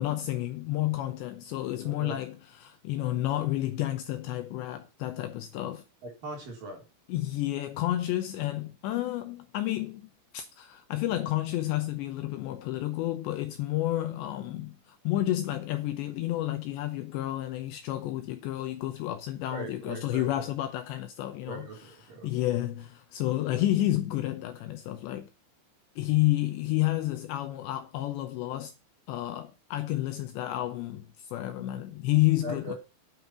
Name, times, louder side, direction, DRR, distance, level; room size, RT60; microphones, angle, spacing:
voice 1, 0.0-5.8 7.1-21.9 22.2-25.3 26.0-28.7 29.1-32.7, left 15 dB, 80° left, 2.7 m, -30 dB
voice 2, 1.8-2.2 6.0-6.8 19.5-20.4 21.5-22.4 32.4-32.7, right 1 dB, 45° right, 5.0 m, -40 dB
9.9 x 7.9 x 5.8 m
omnidirectional pair, 5.8 m